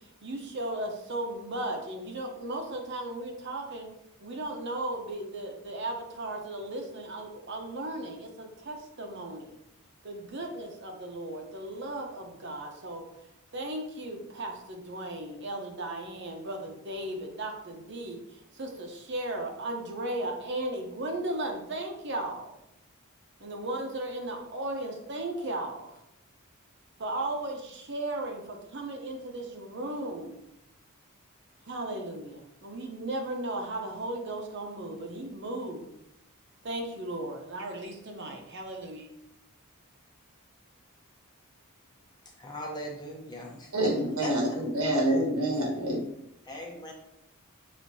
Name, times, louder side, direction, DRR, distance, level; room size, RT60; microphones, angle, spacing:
voice 1, 0.2-3.9 4.2-9.6 10.0-13.0 13.5-22.5 23.4-26.0 27.0-30.4 31.6-35.9 36.6-39.1, right 1 dB, 50° right, 3 dB, 0.7 m, -36 dB
voice 2, 42.4-43.9 44.2-44.3 46.4-46.9, left 1 dB, 20° left, 0 dB, 0.8 m, -39 dB
voice 3, 43.7-46.0, right 1 dB, 80° right, 0 dB, 1.2 m, -27 dB
6.3 x 3.1 x 2.7 m, 0.80 s
head